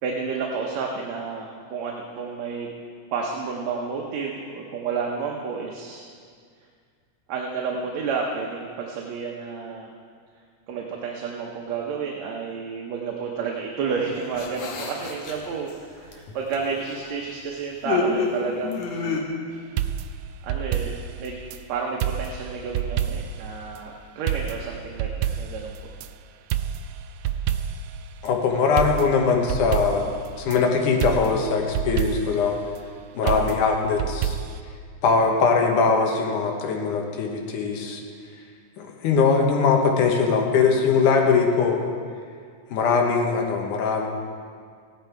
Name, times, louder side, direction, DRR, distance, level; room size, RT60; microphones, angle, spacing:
voice 1, 0.0-2.7 3.1-6.1 7.3-9.9 10.7-19.3 20.4-21.4 21.7-25.8 33.2-33.4, right 5 dB, 70° right, -1 dB, 2.1 m, -30 dB
sound 1, 13.9-15.7 16.1-17.1 17.8-19.2, left 4 dB, 65° left, 2.3 m, -29 dB
sound 2, 19.8-21.6 22.0-23.5 23.8-23.9 24.3-26.1 26.5-28.0 28.3-28.4 28.8-30.6 31.0-32.5 33.3-34.6, right 9 dB, 85° right, 1.4 m, -28 dB
voice 2, 28.2-30.1 30.4-32.6 33.1-34.4 35.0-38.0 38.8-41.8 42.7-44.1, left 5 dB, 85° left, 2 dB, 2.8 m, -21 dB
16.0 x 10.5 x 4.6 m, 2.1 s
omnidirectional pair, 3.5 m